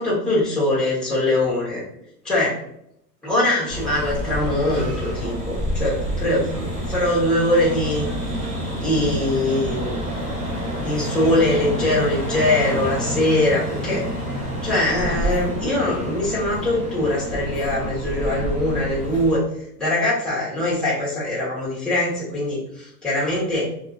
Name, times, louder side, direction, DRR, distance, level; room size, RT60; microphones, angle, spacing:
voice 1, 0.0-1.8 2.2-2.6 3.2-8.1 8.8-10.0 10.8-14.0 14.6-19.4 19.8-23.6, left 1 dB, ahead, -8 dB, 1.1 m, -22 dB
sound 1, 3.7-19.3, equal, 15° right, 0.7 m, -28 dB
2.8 x 2.5 x 2.3 m, 0.73 s
hypercardioid pair, 110°, 49 cm